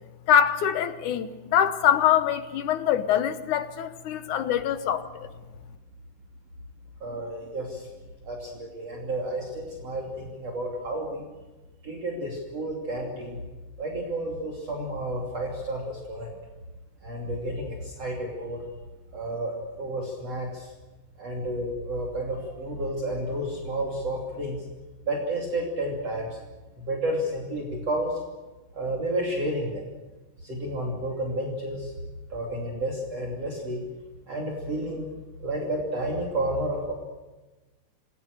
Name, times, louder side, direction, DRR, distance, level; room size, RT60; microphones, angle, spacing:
voice 1, 0.3-5.3, left 9 dB, 70° left, 2.3 m, -24 dB
voice 2, 7.0-7.9 8.3-11.2 11.8-13.4 13.8-16.3 17.0-18.6 19.1-20.7 21.2-24.6 25.0-26.4 26.8-28.2 28.7-29.8 30.4-31.9 32.3-33.8 34.3-35.1 35.4-36.9, right 1 dB, 45° right, 3.8 m, -31 dB
27.5 x 21.0 x 6.7 m
omnidirectional pair, 4.0 m